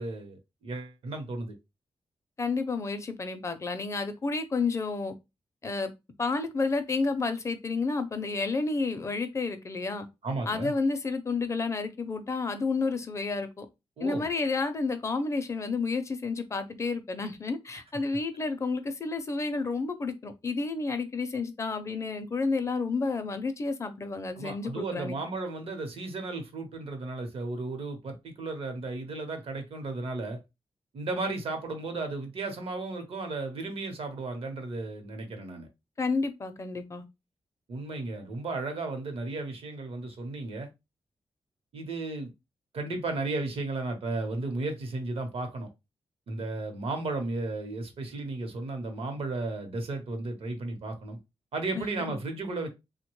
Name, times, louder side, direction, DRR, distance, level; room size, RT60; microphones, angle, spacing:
voice 1, 0.0-1.5 10.2-10.7 14.0-14.3 24.4-30.4 30.9-35.7 37.7-40.7 41.7-42.3 42.7-45.7 46.3-51.2 51.5-52.7, right 3 dB, 70° right, 0.8 m, -34 dB
voice 2, 2.4-5.1 5.6-5.9 6.2-10.1 10.5-13.7 14.0-25.2 36.0-37.0 51.8-52.1, left 4 dB, 30° left, 0.4 m, -30 dB
3.3 x 2.1 x 3.0 m
wide cardioid pair, 155°, 10 cm